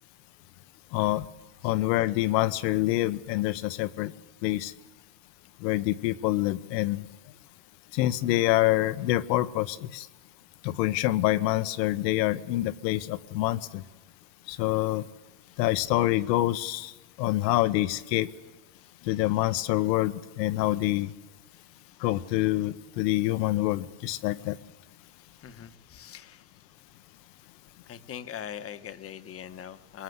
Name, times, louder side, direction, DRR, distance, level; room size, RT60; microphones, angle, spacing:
voice 1, 0.9-1.3 1.6-4.1 4.4-4.7 5.6-7.1 7.9-10.1 10.6-13.8 14.5-15.0 15.6-16.9 17.2-18.3 19.0-21.1 22.0-24.6, left 16 dB, 75° left, 15 dB, 1.3 m, -26 dB
voice 2, 25.4-26.4 27.9-30.0, left 9 dB, 30° left, 11 dB, 1.3 m, -41 dB
23.5 x 21.5 x 8.1 m, 1.2 s
supercardioid pair, 125°, 50 cm